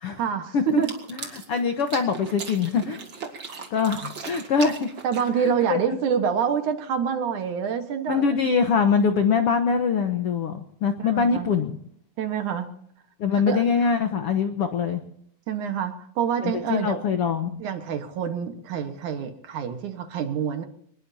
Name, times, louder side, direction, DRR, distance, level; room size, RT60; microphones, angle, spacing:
voice 1, 0.2-0.9 5.0-8.3 11.0-11.5 12.2-12.7 13.3-13.6 15.5-17.0 17.6-20.6, right 7 dB, 60° right, 7 dB, 2.5 m, -27 dB
sound 1, 0.7-5.5, right 4 dB, 35° right, 2.5 m, -38 dB
voice 2, 1.1-3.0 3.7-4.9 5.4-5.8 8.1-11.8 13.2-15.0 16.4-17.6, left 5 dB, 70° left, 7 dB, 1.3 m, -23 dB
24.5 x 20.5 x 2.8 m, 0.67 s
omnidirectional pair, 4.3 m